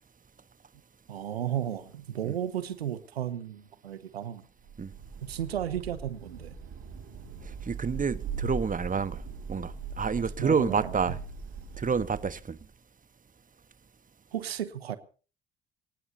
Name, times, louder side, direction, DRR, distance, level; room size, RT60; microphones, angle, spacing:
voice 1, 1.1-4.4 5.2-6.5 10.4-11.2 14.3-15.0, right 10 dB, 90° right, 0.9 m, -34 dB
Thunder / Rain, 4.6-12.6, right 4 dB, 65° right, 6.2 m, -40 dB
voice 2, 7.4-9.2 9.5-11.2 11.8-12.6, right 6 dB, 25° right, 1.3 m, -29 dB
23.5 x 19.0 x 2.8 m
hypercardioid pair, 50°, 30 cm